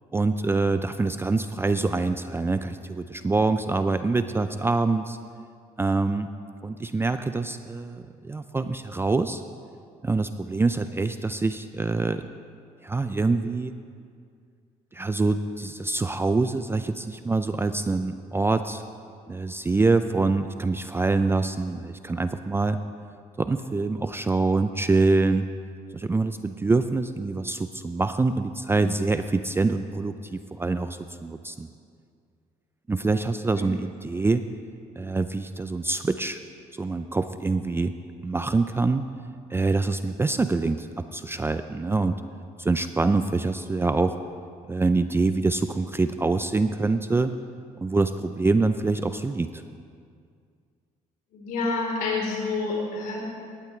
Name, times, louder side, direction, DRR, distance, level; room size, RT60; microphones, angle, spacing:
voice 1, 0.1-5.2 5.8-6.3 6.6-9.4 10.0-12.3 12.8-13.7 14.9-18.8 19.3-22.8 23.4-25.5 25.9-31.7 32.9-34.4 35.0-36.4 36.8-37.9 38.2-39.0 39.5-42.2 42.6-44.1 44.7-47.3 47.8-49.6, right 3 dB, 15° right, 10 dB, 0.4 m, -25 dB
voice 2, 51.3-53.3, left 3 dB, 80° left, -2 dB, 3.8 m, -28 dB
17.5 x 11.5 x 3.2 m, 2.2 s
cardioid pair, 95°, 14 cm